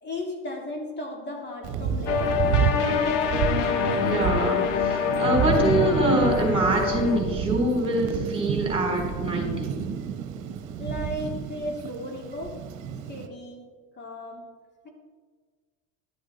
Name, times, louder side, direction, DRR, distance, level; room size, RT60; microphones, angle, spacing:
voice 1, 0.0-2.5 10.8-12.6 13.1-14.5 14.8-14.9, left 1 dB, 30° left, 0 dB, 2.4 m, -35 dB
Thunder, 1.6-13.3, right 7 dB, 55° right, 1.1 m, -29 dB
sound 1, 2.1-7.2, left 7 dB, 90° left, 1.1 m, -25 dB
voice 2, 4.0-9.7, right 1 dB, 15° right, 0 dB, 3.7 m, -25 dB
12.0 x 8.5 x 4.2 m, 1.5 s
supercardioid pair, 90°, 36 cm